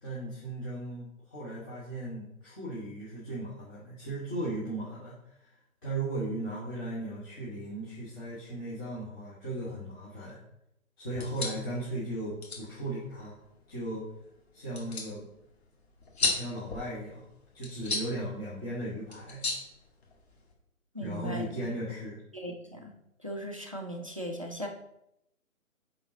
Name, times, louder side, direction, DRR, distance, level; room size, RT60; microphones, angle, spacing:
voice 1, 0.0-5.5 5.8-10.4 11.0-13.4 13.7-14.0 14.5-15.3 16.2-17.3 17.5-19.4 21.0-22.2, right 1 dB, 15° left, -10 dB, 1.2 m, -37 dB
sound 1, 11.1-20.5, left 3 dB, 45° left, 1.8 m, -38 dB
voice 2, 20.9-21.7 22.3-22.9 23.2-24.7, equal, 25° right, 2 dB, 0.4 m, -38 dB
8.8 x 3.9 x 3.8 m, 0.83 s
hypercardioid pair, 155°, 43 cm